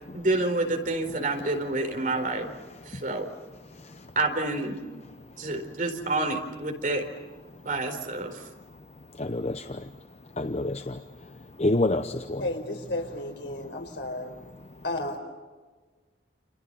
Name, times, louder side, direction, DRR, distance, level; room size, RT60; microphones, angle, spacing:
voice 1, 0.1-2.5 2.9-3.3 4.2-4.8 5.4-7.0 7.6-8.4, right 2 dB, 45° right, 4 dB, 4.3 m, -28 dB
voice 2, 9.2-9.6 10.4-10.9 11.6-12.4, left 2 dB, 35° left, 10 dB, 0.8 m, -26 dB
voice 3, 12.4-14.3 14.8-15.2, left 1 dB, 75° left, 4 dB, 5.0 m, -32 dB
30.0 x 28.5 x 5.6 m, 1.3 s
head